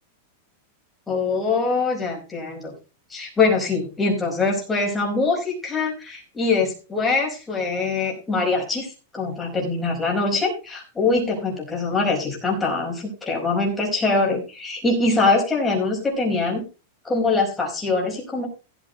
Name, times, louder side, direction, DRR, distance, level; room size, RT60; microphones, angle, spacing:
voice 1, 1.1-2.7 3.1-16.6 17.0-18.5, left 3 dB, 10° left, -1 dB, 4.9 m, -23 dB
15.5 x 8.2 x 3.9 m, 0.32 s
supercardioid pair, 170°, 0 cm